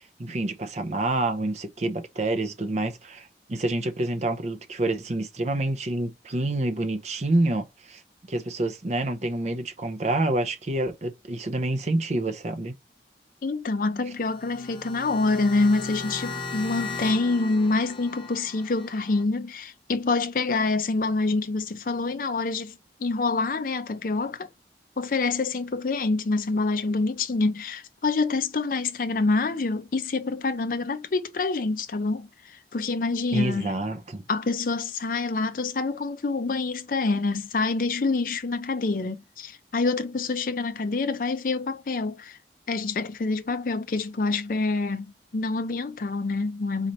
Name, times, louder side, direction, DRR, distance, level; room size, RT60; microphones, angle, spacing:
voice 1, 0.2-12.7 33.3-34.2, right 2 dB, 40° right, 0.6 m, -28 dB
voice 2, 13.4-24.5 25.0-33.8 34.3-42.4 42.7-46.9, left 3 dB, 50° left, 0.5 m, -26 dB
sound 1, 14.2-19.2, left 3 dB, 30° left, 0.8 m, -37 dB
4.0 x 3.0 x 4.1 m
head